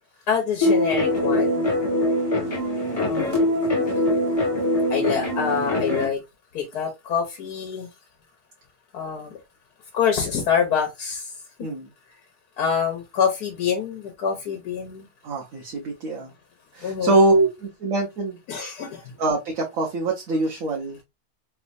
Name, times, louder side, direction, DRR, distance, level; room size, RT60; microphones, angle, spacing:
voice 1, 0.3-1.8 2.9-3.6 4.9-6.2 6.5-7.9 8.9-9.3 9.9-11.2 12.6-15.1 16.8-17.1 18.5-19.0, left 7 dB, 85° left, 1.4 m, -26 dB
sound 1, 0.6-6.1, left 1 dB, 20° left, 2.0 m, -23 dB
voice 2, 15.2-16.3 16.7-18.4 19.2-21.0, right 2 dB, 65° right, 1.2 m, -23 dB
3.4 x 3.2 x 2.5 m
omnidirectional pair, 1.6 m